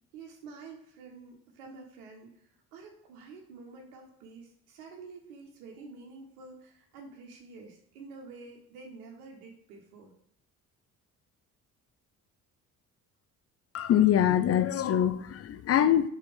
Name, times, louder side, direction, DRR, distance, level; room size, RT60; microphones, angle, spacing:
voice 1, 0.1-10.1, right 4 dB, 70° right, 1.3 m, -48 dB
voice 2, 13.7-16.1, left 10 dB, 35° left, 0.5 m, -24 dB
5.0 x 4.4 x 5.1 m
figure-of-eight pair, 45°, 46 cm